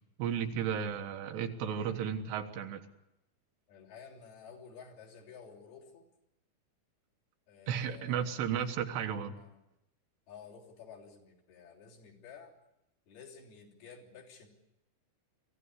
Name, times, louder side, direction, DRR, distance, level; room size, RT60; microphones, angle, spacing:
voice 1, 0.2-2.9 7.7-9.4, right 8 dB, 80° right, 6 dB, 3.5 m, -34 dB
voice 2, 3.7-6.1 7.5-8.7 9.3-9.6 10.3-12.5 13.1-14.5, left 6 dB, 65° left, -1 dB, 5.1 m, -52 dB
24.5 x 15.5 x 9.8 m, 0.89 s
omnidirectional pair, 4.8 m